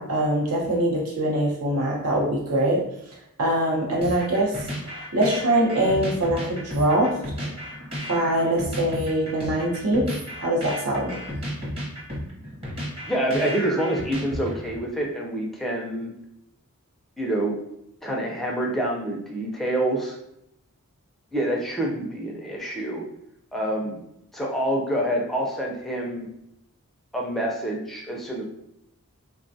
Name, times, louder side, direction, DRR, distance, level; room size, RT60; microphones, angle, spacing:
voice 1, 0.0-2.8 3.4-4.6 4.8-7.1 7.4-7.5 8.1-10.1 10.4-11.2, right 1 dB, 75° right, -3 dB, 0.7 m, -23 dB
sound 1, 4.0-14.8, equal, 25° right, 0.8 m, -33 dB
voice 2, 13.1-16.1 17.2-17.6 18.0-20.2 21.3-23.0 23.5-24.0 24.3-26.3 27.1-28.4, right 1 dB, ahead, -2 dB, 0.4 m, -27 dB
3.3 x 2.2 x 2.6 m, 0.79 s
head